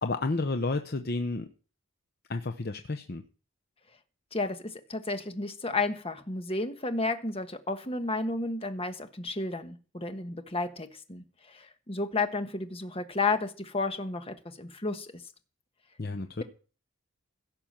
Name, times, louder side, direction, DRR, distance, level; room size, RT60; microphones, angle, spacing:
voice 1, 0.0-1.5 2.3-3.2 16.0-16.4, left 3 dB, 45° left, 7 dB, 0.8 m, -31 dB
voice 2, 4.3-15.2, left 3 dB, 25° left, 8 dB, 1.3 m, -32 dB
16.5 x 6.1 x 7.4 m, 0.37 s
head